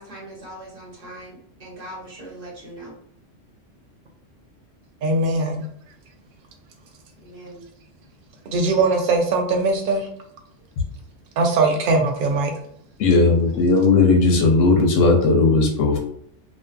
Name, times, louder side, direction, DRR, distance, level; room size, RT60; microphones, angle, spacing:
voice 1, 0.0-2.9 7.2-7.6, right 1 dB, 40° right, -5 dB, 1.0 m, -40 dB
voice 2, 5.0-5.6 8.5-10.1 11.4-12.5, right 3 dB, 60° right, 2 dB, 0.6 m, -20 dB
voice 3, 13.0-16.0, left 3 dB, 85° left, 1 dB, 1.0 m, -16 dB
2.5 x 2.4 x 2.2 m, 0.66 s
omnidirectional pair, 1.3 m